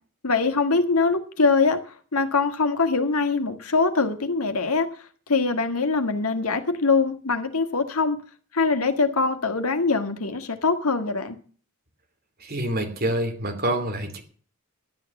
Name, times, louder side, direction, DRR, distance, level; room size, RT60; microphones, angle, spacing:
voice 1, 0.2-8.2 8.5-11.4, left 4 dB, 90° left, 8 dB, 1.8 m, -23 dB
voice 2, 12.4-14.2, right 1 dB, 45° right, 5 dB, 2.9 m, -27 dB
12.0 x 9.3 x 7.1 m, 0.43 s
head